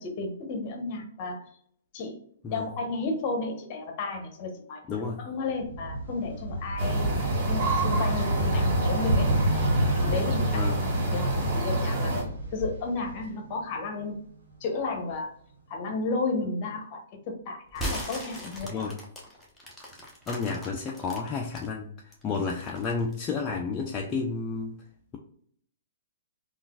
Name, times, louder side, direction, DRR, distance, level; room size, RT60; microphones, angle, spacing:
voice 1, 0.0-1.4 1.9-2.2 2.5-4.8 5.2-7.1 7.5-9.6 10.0-10.7 11.1-11.3 11.5-12.1 12.5-14.1 14.6-15.3 15.7-18.9, left 3 dB, 40° left, 4 dB, 0.9 m, -32 dB
voice 2, 4.9-5.2 8.5-8.7 10.5-10.8 18.6-19.0 20.3-24.8, left 4 dB, 25° left, -1 dB, 0.4 m, -31 dB
sound 1, 5.5-13.6 14.0-15.1, right 1 dB, 80° right, 1.2 m, -31 dB
sound 2, 6.8-12.2, right 1 dB, 45° right, 1.5 m, -27 dB
sound 3, 17.7-21.7 22.1-23.4, equal, 5° left, 0.9 m, -38 dB
3.7 x 2.4 x 2.3 m, 0.63 s
hypercardioid pair, 125°, 0 cm